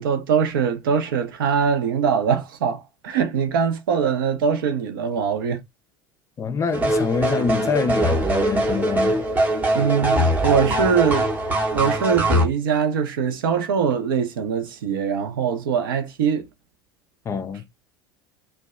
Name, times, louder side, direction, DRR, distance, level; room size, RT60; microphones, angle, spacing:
voice 1, 0.0-5.6 9.7-11.3 11.7-16.5, right 7 dB, 70° right, 0.5 m, -22 dB
voice 2, 6.4-9.3 17.3-17.6, left 5 dB, 25° left, 0.4 m, -25 dB
sound 1, 6.7-12.5, right 1 dB, 15° right, 0.7 m, -21 dB
2.6 x 2.2 x 2.3 m
figure-of-eight pair, 70°, 12 cm